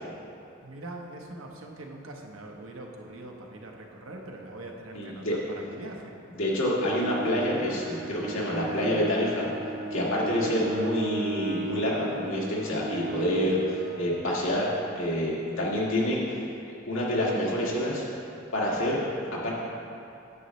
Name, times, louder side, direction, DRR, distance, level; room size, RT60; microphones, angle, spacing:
voice 1, 0.6-6.2 10.2-10.3, right 2 dB, 85° right, 1 dB, 1.0 m, -42 dB
voice 2, 4.9-5.4 6.3-9.5 9.9-16.4 16.9-18.0 18.5-19.0 19.4-19.5, equal, 90° left, -5 dB, 1.8 m, -27 dB
Bowed string instrument, 6.5-14.7, right 2 dB, 50° right, 0.7 m, -36 dB
9.7 x 7.6 x 3.1 m, 2.7 s
head